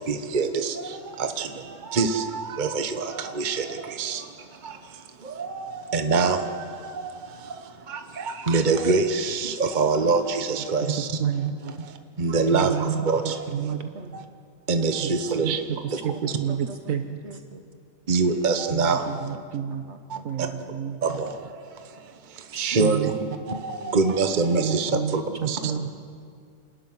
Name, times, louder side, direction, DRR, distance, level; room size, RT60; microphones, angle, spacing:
voice 1, 0.1-4.2 4.6-4.8 5.2-6.7 6.9-7.1 7.9-11.1 11.6-11.7 12.2-13.4 14.7-15.6 16.2-16.3 18.1-19.3 21.0-21.3 22.6-23.1 23.5-25.7, right 4 dB, 35° right, 7 dB, 1.2 m, -25 dB
voice 2, 10.8-11.6 12.5-13.9 15.0-15.6 15.9-17.2 18.7-19.8 20.2-21.0 22.5-23.3 24.6-25.9, right 8 dB, 70° right, 7 dB, 1.3 m, -30 dB
voice 3, 13.6-14.2 15.3-15.4 16.7-16.9 17.2-17.6 19.0-19.4 19.7-21.0 23.8-24.0 25.7-25.8, right 2 dB, 50° right, 6 dB, 1.9 m, -43 dB
28.0 x 13.0 x 9.6 m, 2.2 s
omnidirectional pair, 1.5 m